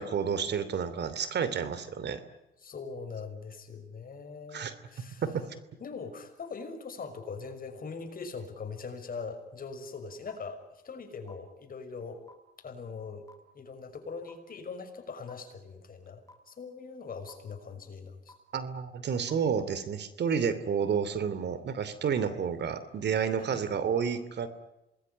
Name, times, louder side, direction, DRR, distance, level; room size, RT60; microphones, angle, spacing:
voice 1, 0.0-2.2 4.5-4.7 5.2-5.5 18.5-24.5, right 7 dB, 60° right, 14 dB, 2.9 m, -30 dB
voice 2, 2.6-5.2 5.8-12.2 12.6-13.3 13.5-18.3 20.8-20.9 23.4-23.6, left 5 dB, 45° left, 6 dB, 6.1 m, -41 dB
sound 1, 10.3-10.4 11.3-11.4 12.3-12.4 13.3-13.4 14.3-14.4 15.3-15.4 16.3-16.4 17.3-17.4 18.3-18.4 19.3-19.4, left 2 dB, 15° left, 7.2 m, -51 dB
27.0 x 20.5 x 9.9 m, 0.94 s
cardioid pair, 90°, 20 cm